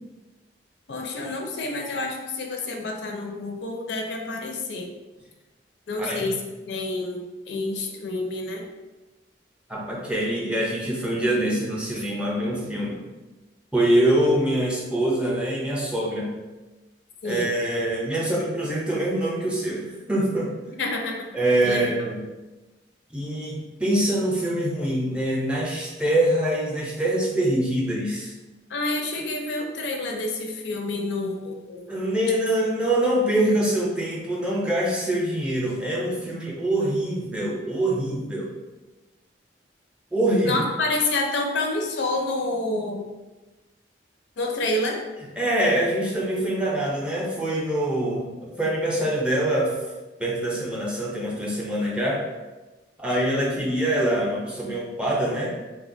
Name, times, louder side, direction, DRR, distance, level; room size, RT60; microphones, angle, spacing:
voice 1, 0.9-4.9 5.9-6.3 6.7-8.7 17.2-17.5 20.8-21.3 21.6-21.9 28.7-31.8 40.4-43.0 44.4-45.0, left 2 dB, 75° left, 2 dB, 0.4 m, -28 dB
voice 2, 6.0-6.3 9.7-13.1 13.7-16.3 17.2-20.5 21.3-22.2 23.1-28.3 31.9-38.5 40.1-40.6 45.4-49.7 50.2-52.2 53.0-55.5, right 1 dB, 5° right, -4 dB, 0.4 m, -24 dB
3.2 x 2.2 x 2.6 m, 1.1 s
head